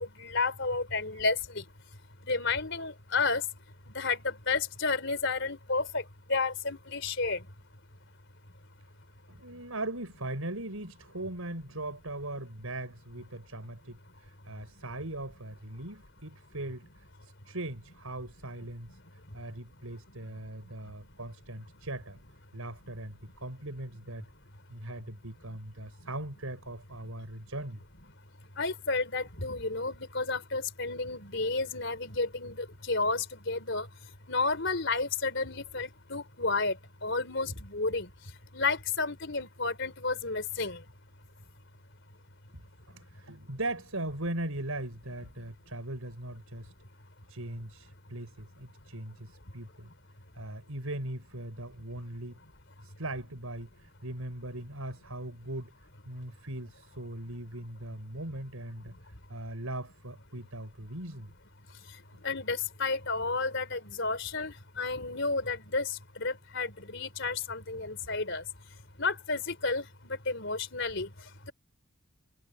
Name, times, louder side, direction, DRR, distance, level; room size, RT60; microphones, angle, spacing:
voice 1, 0.0-1.6 2.2-3.5 3.9-7.5 28.6-33.9 34.3-38.1 38.5-40.8 58.9-59.0 61.9-68.4 69.0-71.5, left 3 dB, 55° left, 4.2 m, -31 dB
voice 2, 9.3-16.9 17.2-19.0 19.3-22.2 22.5-24.2 24.7-27.8 42.5-46.7 47.3-49.9 50.3-52.4 52.8-53.7 54.0-55.7 56.1-61.3 62.1-62.2, right 1 dB, 85° right, 6.0 m, -39 dB
head